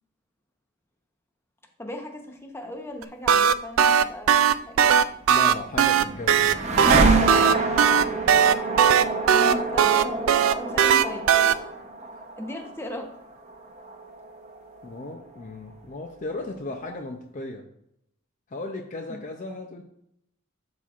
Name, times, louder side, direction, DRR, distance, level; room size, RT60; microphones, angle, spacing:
voice 1, 1.8-5.0 9.3-10.3 10.6-11.3 12.4-13.1 19.1-19.2, left 1 dB, 10° left, 2 dB, 0.8 m, -37 dB
sound 1, 3.0-11.5, right 8 dB, 75° right, 0.3 m, -18 dB
voice 2, 5.3-6.9 14.8-17.6 18.5-19.8, left 2 dB, 40° left, 3 dB, 0.5 m, -35 dB
sound 2, 5.5-15.4, right 3 dB, 35° right, 0.7 m, -27 dB
11.5 x 4.2 x 2.4 m, 0.77 s
head